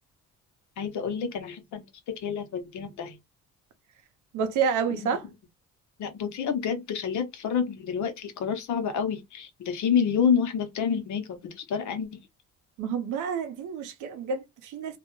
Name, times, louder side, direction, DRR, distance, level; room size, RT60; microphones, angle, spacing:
voice 1, 0.8-1.9 2.2-3.2 6.0-12.2, left 7 dB, 75° left, 0.7 m, -28 dB
voice 2, 4.3-5.3 12.8-15.0, right 6 dB, 85° right, 0.6 m, -29 dB
2.3 x 2.1 x 2.9 m
cardioid pair, 90°, 30 cm